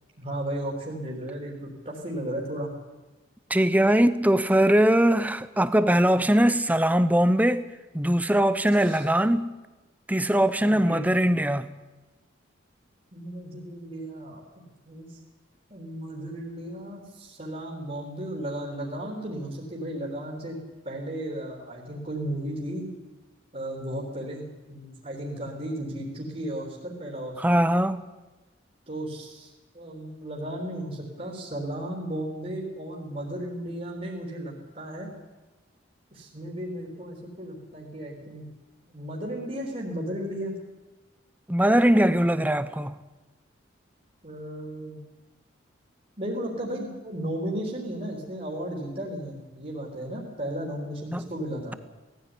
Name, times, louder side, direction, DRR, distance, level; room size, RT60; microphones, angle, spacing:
voice 1, 0.2-2.7 8.8-9.0 10.6-11.0 13.1-14.4 14.9-15.2 15.7-20.6 20.8-22.9 23.5-27.6 28.9-35.1 36.1-38.4 38.9-40.5 44.2-45.0 46.2-51.7, right 1 dB, 35° right, 3.8 m, -35 dB
voice 2, 3.5-7.7 7.9-9.5 10.1-11.7 27.4-28.0 41.5-43.0 51.1-51.2, right 1 dB, 10° right, 0.7 m, -21 dB
19.0 x 15.0 x 10.0 m
head